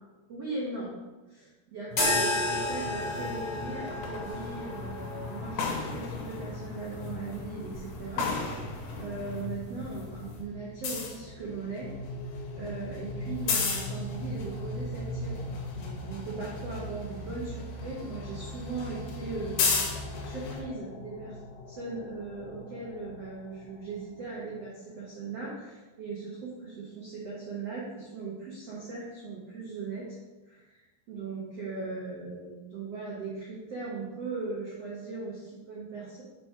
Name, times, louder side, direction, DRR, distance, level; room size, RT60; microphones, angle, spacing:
voice 1, 0.3-0.9 1.3-8.6 8.9-11.9 12.5-21.4 21.7-30.2 30.5-36.2, right 3 dB, 75° right, -5 dB, 1.4 m, -39 dB
sound 1, 1.9-10.4, left 2 dB, 35° left, 2.6 m, -34 dB
sound 2, 2.4-9.5 9.8-20.6, left 4 dB, 65° left, 2.3 m, -36 dB
sound 3, 10.3-25.1, left 1 dB, 85° left, 2.7 m, -41 dB
7.3 x 4.5 x 4.8 m, 1.2 s
omnidirectional pair, 4.9 m